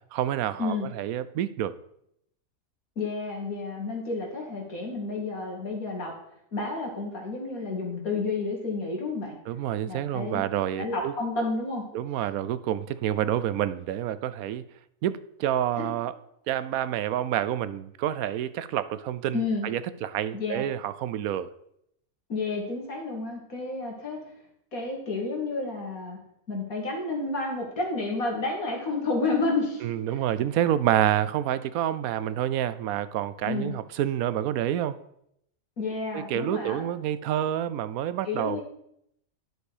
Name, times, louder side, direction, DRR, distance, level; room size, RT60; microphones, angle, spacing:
voice 1, 0.1-1.7 9.5-11.1 11.9-14.6 15.0-16.1 16.5-21.5 29.8-35.0 36.1-38.6, right 11 dB, 80° right, 1.0 m, -28 dB
voice 2, 3.0-6.1 6.5-9.4 9.9-10.4 10.8-11.8 15.8-15.9 19.3-19.7 20.3-20.6 22.3-24.2 24.7-26.2 26.5-29.8 30.1-30.2 33.4-33.7 35.8-36.8 38.2-38.6, left 3 dB, 80° left, 2.8 m, -30 dB
11.0 x 6.3 x 4.9 m
omnidirectional pair, 1.5 m